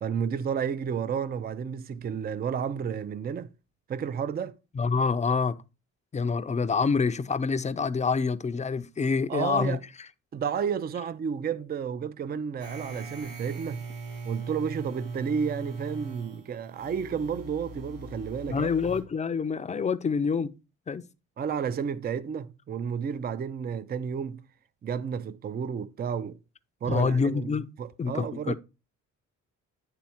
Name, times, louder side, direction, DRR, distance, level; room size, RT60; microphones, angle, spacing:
voice 1, 0.0-3.5 3.9-4.6 9.3-9.8 10.3-13.8 14.2-18.7 21.4-24.4 24.8-26.4 26.8-27.5 27.8-28.5, right 7 dB, 30° right, 0.4 m, -31 dB
voice 2, 4.7-5.6 6.1-9.8 18.5-20.6 20.9-21.0 26.9-27.7 28.0-28.5, left 5 dB, 25° left, 0.5 m, -26 dB
sound 1, 12.6-19.0, right 4 dB, 80° right, 4.4 m, -40 dB
9.7 x 3.4 x 4.3 m
cardioid pair, 90°, 30 cm